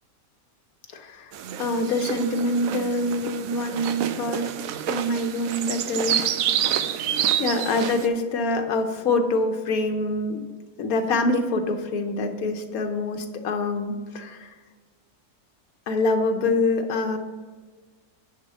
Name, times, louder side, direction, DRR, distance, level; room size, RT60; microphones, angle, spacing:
voice 1, 0.9-1.3 1.6-4.5 4.9-6.4 7.4-10.4 10.8-14.5 15.9-17.2, left 2 dB, 75° left, 5 dB, 1.3 m, -25 dB
sound 1, 1.3-8.1, right 10 dB, 70° right, 1.0 m, -28 dB
10.5 x 3.7 x 6.4 m, 1.4 s
omnidirectional pair, 1.6 m